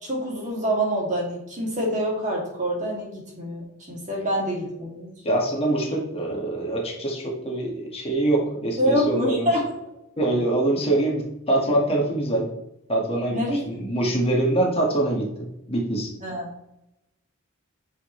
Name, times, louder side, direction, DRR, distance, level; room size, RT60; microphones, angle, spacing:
voice 1, 0.0-5.1 8.8-9.7 13.3-13.6 16.2-16.5, equal, 35° right, -3 dB, 2.8 m, -26 dB
voice 2, 5.2-9.5 10.2-12.5 12.9-16.1, right 1 dB, 30° left, -2 dB, 1.9 m, -24 dB
9.9 x 5.7 x 3.3 m, 0.85 s
head